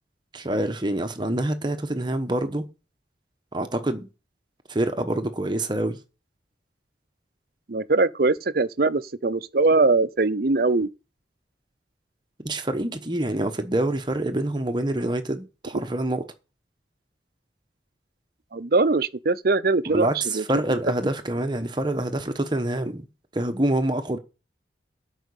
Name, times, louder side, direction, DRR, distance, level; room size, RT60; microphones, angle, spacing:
voice 1, 0.3-2.6 3.5-4.1 4.7-6.0 12.4-16.2 19.9-23.0 23.3-24.2, right 1 dB, 25° right, 1.0 m, -26 dB
voice 2, 7.7-10.9 15.7-15.8 18.5-20.4, right 3 dB, 55° right, 0.6 m, -22 dB
9.1 x 5.7 x 8.3 m
head